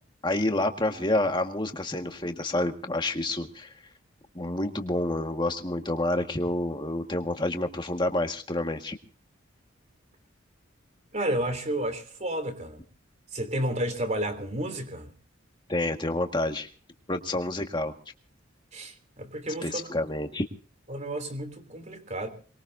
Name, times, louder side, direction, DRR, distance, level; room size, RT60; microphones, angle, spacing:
voice 1, 0.2-3.7 4.4-9.0 15.7-16.7 17.1-18.0 19.6-20.5, left 1 dB, 25° left, 5 dB, 1.8 m, -28 dB
voice 2, 11.1-12.8 13.3-15.1 18.7-19.9 20.9-22.3, right 1 dB, 35° right, 8 dB, 3.4 m, -31 dB
24.5 x 22.0 x 2.7 m, 0.40 s
head